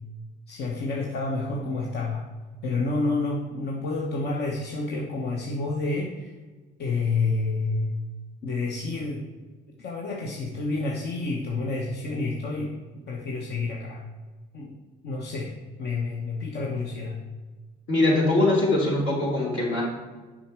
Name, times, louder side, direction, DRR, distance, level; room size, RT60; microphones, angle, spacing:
voice 1, 0.5-2.3 2.6-6.3 6.8-8.0 8.4-9.3 9.8-12.8 13.1-14.0 14.5-14.7 15.0-17.2, left 3 dB, 50° left, 0 dB, 0.9 m, -29 dB
voice 2, 17.9-19.8, left 2 dB, 70° left, -4 dB, 2.5 m, -22 dB
7.0 x 5.0 x 4.5 m, 1.3 s
hypercardioid pair, 55°, 21 cm